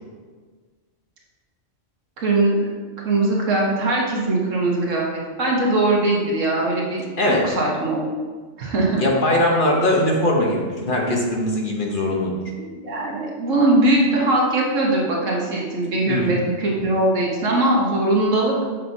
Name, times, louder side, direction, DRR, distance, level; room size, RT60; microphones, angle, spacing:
voice 1, 2.2-2.7 3.0-8.0 8.6-9.0 12.6-18.5, right 2 dB, 85° right, -3 dB, 1.7 m, -21 dB
voice 2, 7.2-7.5 9.0-12.3 16.1-16.3, left 1 dB, 45° left, -1 dB, 1.0 m, -20 dB
7.3 x 5.7 x 2.7 m, 1.5 s
omnidirectional pair, 1.3 m